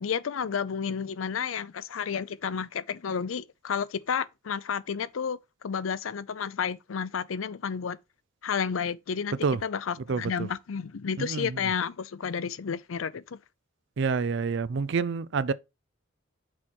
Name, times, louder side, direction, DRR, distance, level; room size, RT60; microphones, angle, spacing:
voice 1, 0.0-8.0 8.4-13.4, left 6 dB, 85° left, 0.5 m, -31 dB
voice 2, 10.1-10.5 11.2-11.6 14.0-15.5, right 5 dB, 65° right, 0.4 m, -28 dB
6.2 x 4.5 x 4.4 m
head